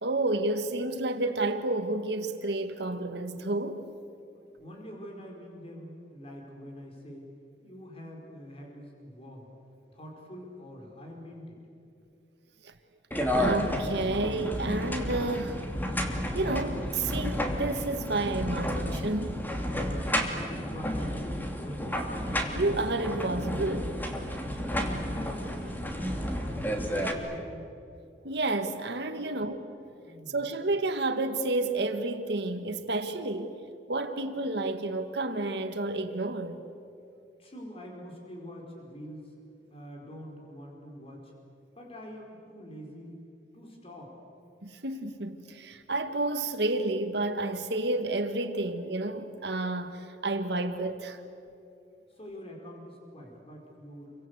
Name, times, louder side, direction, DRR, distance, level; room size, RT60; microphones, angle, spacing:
voice 1, 0.0-3.8 12.6-12.7 13.3-15.6 16.3-19.5 22.5-24.0 28.2-29.6 30.3-33.6 33.9-36.6 44.6-51.2, right 2 dB, 70° right, 1.8 m, -30 dB
voice 2, 4.6-7.2 7.6-9.5 9.9-11.6 20.1-21.9 25.1-26.3 26.6-27.7 29.1-29.5 30.0-30.5 37.4-39.3 39.7-41.3 41.7-43.2 43.5-44.1 52.1-54.1, equal, 35° left, 4.8 m, -45 dB
sound 1, 13.1-27.1, equal, 10° left, 2.7 m, -31 dB
29.0 x 24.0 x 8.1 m
head